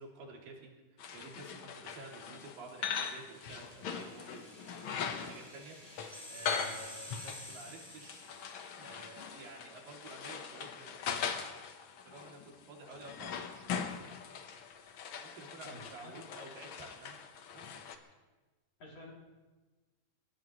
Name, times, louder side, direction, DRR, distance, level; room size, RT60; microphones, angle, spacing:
voice 1, 0.0-11.3 12.1-13.8 15.2-17.2 17.5-17.8, right 2 dB, 85° right, 0 dB, 4.3 m, -52 dB
sound 1, 1.0-18.0, left 6 dB, 85° left, 1.1 m, -41 dB
sound 2, 3.0-8.9, left 1 dB, 15° right, 2.1 m, -51 dB
voice 2, 15.6-16.2 18.8-19.1, left 1 dB, 50° left, -2 dB, 3.7 m, -50 dB
29.5 x 16.0 x 3.0 m, 1.2 s
omnidirectional pair, 3.8 m